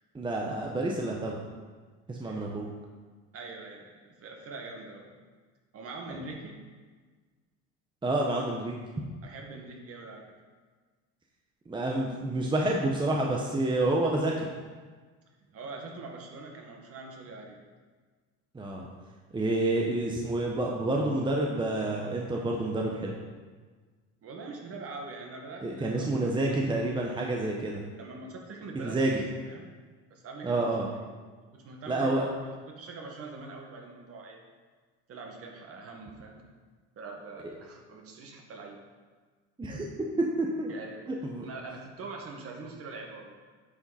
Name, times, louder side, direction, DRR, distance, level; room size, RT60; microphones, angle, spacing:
voice 1, 0.1-1.4 2.1-2.7 8.0-8.8 11.7-14.5 18.5-18.8 19.3-23.1 25.6-27.8 28.7-29.2 30.4-30.9 31.9-32.2 39.6-39.9 40.4-40.7 41.2-41.5, right 2 dB, 15° right, -1 dB, 1.0 m, -28 dB
voice 2, 3.3-5.1 5.7-6.6 9.2-10.3 15.5-17.6 24.2-26.4 28.0-29.7 30.1-30.7 31.5-34.4 35.1-36.5 36.9-38.8 40.7-41.0 41.4-43.4, right 3 dB, 45° right, 1 dB, 1.8 m, -43 dB
9.7 x 5.8 x 4.3 m, 1.4 s
supercardioid pair, 105°, 33 cm